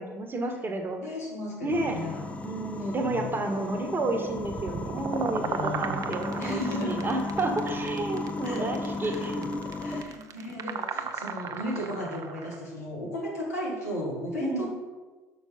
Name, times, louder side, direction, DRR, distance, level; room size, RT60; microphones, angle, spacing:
voice 1, 0.0-1.0 1.6-2.0 2.4-9.5 14.4-14.7, right 2 dB, 25° right, 4 dB, 1.4 m, -31 dB
voice 2, 1.0-2.3 2.8-3.2 5.4-7.0 8.4-9.3 9.8-14.7, left 1 dB, 90° left, -4 dB, 1.9 m, -35 dB
sound 1, 1.7-10.0, left 3 dB, 15° left, 0.7 m, -35 dB
sound 2, 4.4-12.6, right 6 dB, 45° right, 0.7 m, -36 dB
6.0 x 5.4 x 5.2 m, 1.3 s
hypercardioid pair, 60°, 8 cm